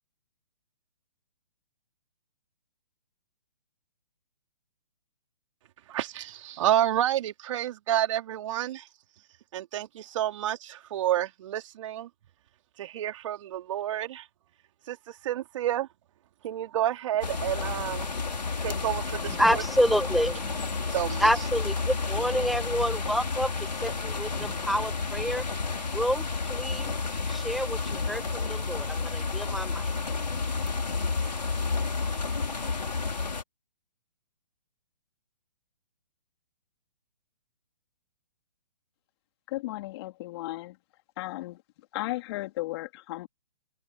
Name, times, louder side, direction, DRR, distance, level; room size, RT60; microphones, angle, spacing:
voice 1, 5.9-8.9 9.5-12.1 12.8-14.3 14.9-15.9 16.4-18.1 18.6-19.6 20.9-21.3, right 12 dB, 50° right, 3.9 m, -29 dB
sound 1, 17.2-33.4, left 4 dB, 90° left, 4.5 m, -31 dB
voice 2, 18.3-18.6 19.2-25.4 25.9-26.9 27.3-29.9, equal, ahead, 1.6 m, -29 dB
voice 3, 39.5-40.8 41.2-41.6 41.9-43.3, left 18 dB, 40° left, 3.3 m, -35 dB
hypercardioid pair, 135°, 21 cm